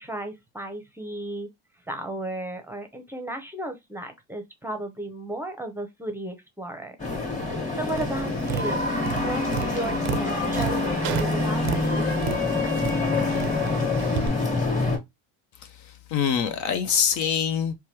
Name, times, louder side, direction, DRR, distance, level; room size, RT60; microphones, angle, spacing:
voice 1, 0.0-1.5 1.9-7.0 7.8-12.0, right 1 dB, 5° right, 0.7 m, -34 dB
sound 1, 7.0-15.0, left 3 dB, 20° left, 1.4 m, -26 dB
Tap, 7.9-14.3, right 12 dB, 55° right, 0.4 m, -34 dB
voice 2, 15.6-17.7, left 7 dB, 55° left, 0.5 m, -25 dB
3.0 x 2.3 x 2.9 m
supercardioid pair, 95°, 36 cm